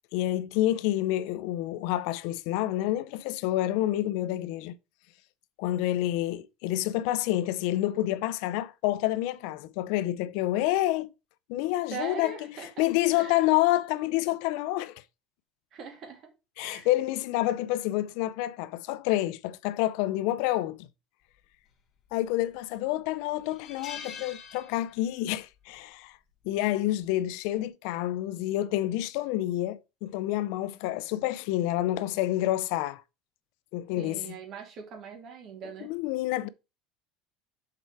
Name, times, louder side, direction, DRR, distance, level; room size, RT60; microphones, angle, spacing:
voice 1, 0.1-4.7 5.6-11.1 11.5-12.5 12.8-15.0 16.6-20.9 22.1-26.2 26.4-33.0 33.7-34.3 35.8-36.5, left 15 dB, 70° left, 0.5 m, -28 dB
voice 2, 11.9-12.8 13.1-13.4 15.7-16.3 16.6-16.9 34.0-35.9, right 6 dB, 40° right, 2.5 m, -41 dB
Metal Pipe Falling on Concrete in Basement, 22.0-22.6 22.9-23.0 23.4-25.3 25.5-25.8 27.0-27.3, left 7 dB, 35° left, 1.2 m, -44 dB
6.7 x 4.6 x 4.7 m
cardioid pair, 160°, 0 cm